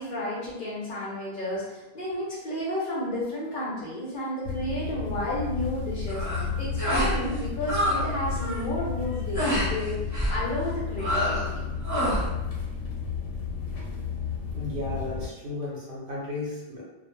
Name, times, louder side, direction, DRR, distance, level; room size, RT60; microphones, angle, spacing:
voice 1, 0.0-10.0 10.3-11.7, left 1 dB, 55° left, -6 dB, 0.6 m, -32 dB
sound 1, 4.4-15.3, left 6 dB, 80° left, 0.9 m, -33 dB
sound 2, 6.1-6.4 6.8-7.2 7.4-8.0 8.3-8.6 9.3-9.7 10.1-10.4 11.0-11.5 11.8-12.3, equal, 20° right, 0.6 m, -26 dB
voice 2, 14.5-16.8, left 2 dB, 55° right, -5 dB, 0.8 m, -34 dB
2.2 x 2.1 x 3.0 m, 1.0 s
omnidirectional pair, 1.2 m